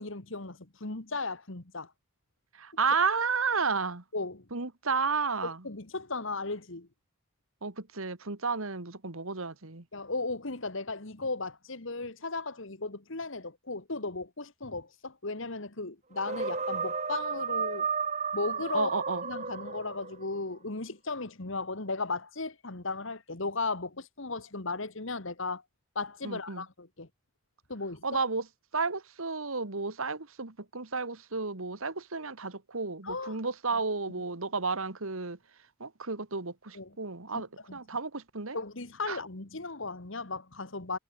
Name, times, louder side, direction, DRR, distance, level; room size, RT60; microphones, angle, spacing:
voice 1, 0.0-1.9 4.1-4.5 5.4-6.9 9.9-17.9 18.3-18.9 19.2-25.6 26.0-27.1 27.7-28.0 33.0-33.4 36.7-36.9 37.7-37.8 38.5-41.0, left 3 dB, 65° left, 1.9 m, -36 dB
voice 2, 2.5-4.0 4.5-5.6 7.6-9.8 18.7-19.2 26.2-26.7 28.0-28.5 28.7-35.4 35.8-38.6 39.1-39.2, right 4 dB, 75° right, 1.8 m, -32 dB
sound 1, 16.2-20.3, right 5 dB, 30° right, 1.5 m, -33 dB
head